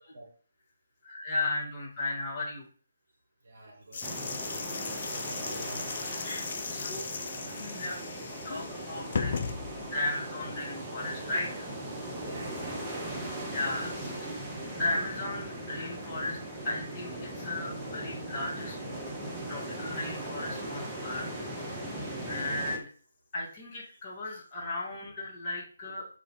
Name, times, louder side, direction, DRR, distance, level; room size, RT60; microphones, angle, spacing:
voice 1, 1.0-2.7 6.2-7.0 7.4-9.3 9.9-11.7 13.3-14.3 14.7-16.4 16.6-18.8 19.5-22.9 23.3-26.1, left 2 dB, 25° left, -4 dB, 0.9 m, -36 dB
voice 2, 3.5-4.0 5.1-5.9 12.3-13.0 22.0-22.1, right 1 dB, 50° right, 0 dB, 1.0 m, -46 dB
sound 1, 3.9-10.2, left 5 dB, 45° left, 0.3 m, -37 dB
sound 2, 4.0-22.8, right 1 dB, 10° right, 0.5 m, -39 dB
2.5 x 2.2 x 3.4 m, 0.42 s
figure-of-eight pair, 145°, 0 cm